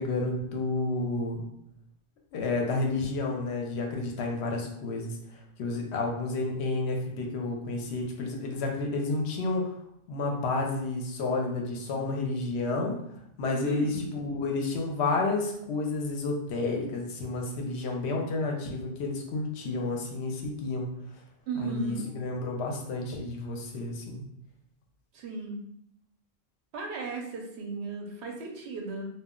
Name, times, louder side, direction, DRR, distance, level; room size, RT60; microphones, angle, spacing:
voice 1, 0.0-1.4 2.3-5.2 5.6-9.7 10.1-13.0 13.4-20.9 21.6-24.2, left 3 dB, 75° left, 1 dB, 0.8 m, -30 dB
voice 2, 13.5-14.1 21.5-22.0 25.1-25.6 26.7-29.0, right 3 dB, 75° right, 2 dB, 0.8 m, -35 dB
2.2 x 2.0 x 3.6 m, 0.74 s
omnidirectional pair, 1.1 m